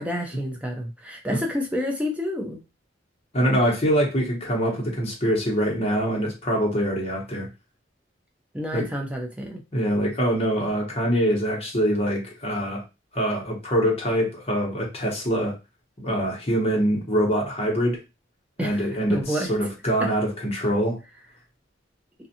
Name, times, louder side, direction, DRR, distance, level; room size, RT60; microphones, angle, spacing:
voice 1, 0.0-2.6 8.5-9.6 18.6-19.5 20.0-20.1, equal, 5° right, 0.4 m, -29 dB
voice 2, 3.3-7.5 8.7-8.9 9.7-12.8 13.1-15.6 16.0-18.0 18.6-21.0, equal, 30° left, 0.8 m, -24 dB
2.5 x 2.3 x 2.7 m
head